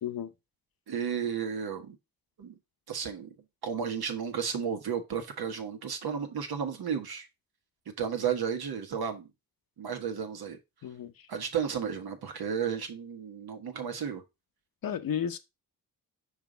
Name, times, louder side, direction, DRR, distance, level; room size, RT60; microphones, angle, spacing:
voice 1, 0.9-2.0 2.4-2.6 2.9-3.3 3.6-7.3 8.0-9.3 9.8-10.6 11.3-14.2, right 7 dB, 70° right, 1.3 m, -33 dB
voice 2, 10.8-11.1 14.8-15.4, left 8 dB, 60° left, 0.8 m, -32 dB
5.1 x 4.8 x 3.9 m
cardioid pair, 70°, 38 cm